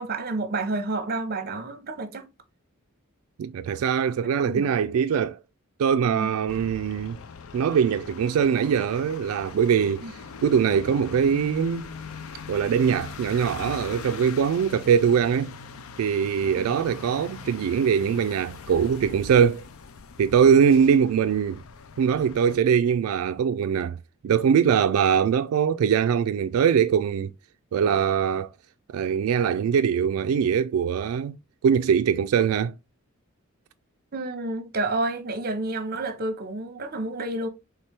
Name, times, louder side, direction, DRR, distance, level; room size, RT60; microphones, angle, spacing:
voice 1, 0.0-2.3 4.4-4.7 6.1-6.4 10.0-10.1 16.4-16.7 34.1-37.5, right 2 dB, 45° right, 0.8 m, -30 dB
voice 2, 3.4-5.4 5.8-7.2 7.5-11.9 12.5-15.5 16.0-19.6 20.2-21.6 22.0-24.0 24.2-27.3 27.7-28.5 28.9-31.4 31.6-32.8, right 7 dB, 85° right, 0.3 m, -22 dB
sound 1, 6.5-22.6, left 5 dB, 75° left, 0.5 m, -41 dB
4.3 x 3.4 x 3.3 m
head